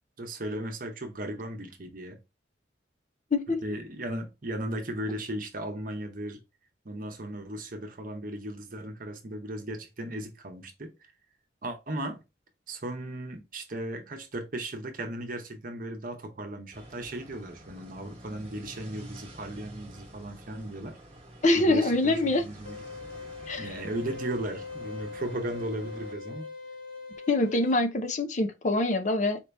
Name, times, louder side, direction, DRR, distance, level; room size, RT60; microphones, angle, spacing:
voice 1, 0.2-2.2 3.6-6.4 6.8-10.9 11.6-12.2 12.7-21.0 21.5-22.8 23.6-26.5, right 1 dB, 45° right, 0.9 m, -36 dB
sound 1, 16.7-26.1, equal, 30° right, 1.2 m, -49 dB
voice 2, 21.4-22.4 23.5-23.7 27.3-29.4, left 2 dB, 40° left, 0.5 m, -24 dB
sound 2, 22.7-27.7, left 4 dB, 65° left, 0.9 m, -41 dB
4.4 x 2.8 x 3.3 m
head